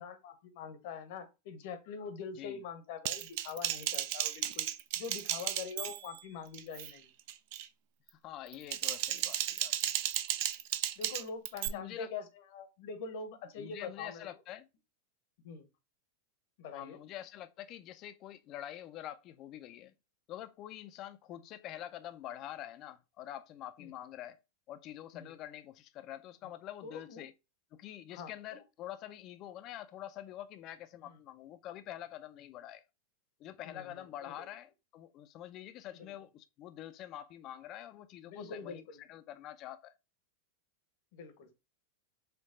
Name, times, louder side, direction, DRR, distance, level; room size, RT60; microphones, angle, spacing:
voice 1, 0.0-4.7 5.0-7.1 11.0-14.3 15.4-15.7 16.6-17.0 23.8-23.9 25.1-25.3 26.8-27.2 28.1-28.6 31.0-31.2 33.6-34.5 36.0-36.1 38.3-39.0 41.1-41.5, left 5 dB, 60° left, 0.9 m, -44 dB
Typing, 3.0-6.2 6.5-6.9 7.3-7.7 8.5-11.7, right 13 dB, 60° right, 0.4 m, -34 dB
voice 2, 8.2-9.8 11.6-12.1 13.6-14.7 16.7-19.9 20.3-24.4 24.7-27.3 27.7-32.8 33.4-39.9, left 12 dB, 45° left, 0.4 m, -46 dB
4.4 x 2.3 x 3.6 m
hypercardioid pair, 100°, 0 cm